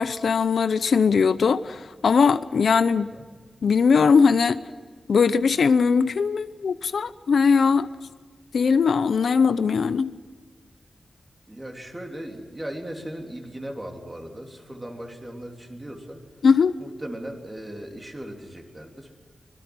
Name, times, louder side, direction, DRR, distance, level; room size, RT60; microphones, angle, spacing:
voice 1, 0.0-3.1 3.6-4.6 5.1-7.9 8.5-10.1 16.4-16.7, left 5 dB, 80° left, 13 dB, 0.7 m, -20 dB
voice 2, 11.5-16.2 16.8-19.1, right 1 dB, 15° right, 2 dB, 3.3 m, -37 dB
25.0 x 22.0 x 6.2 m, 1.6 s
wide cardioid pair, 145°, 0 cm